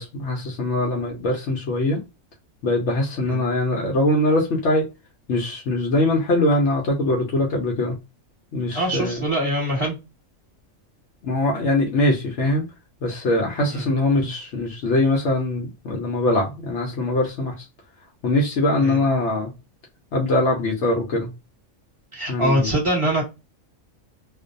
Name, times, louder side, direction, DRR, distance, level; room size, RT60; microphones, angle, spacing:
voice 1, 0.0-2.0 2.6-4.8 5.3-8.0 8.5-9.2 11.2-12.6 13.0-17.7 18.2-19.5 20.1-21.3 22.3-22.7, left 2 dB, 65° left, 0.8 m, -22 dB
voice 2, 8.7-10.0 13.7-13.9 18.8-19.0 22.1-23.2, right 1 dB, 25° right, 1.3 m, -23 dB
2.5 x 2.2 x 2.5 m
omnidirectional pair, 1.4 m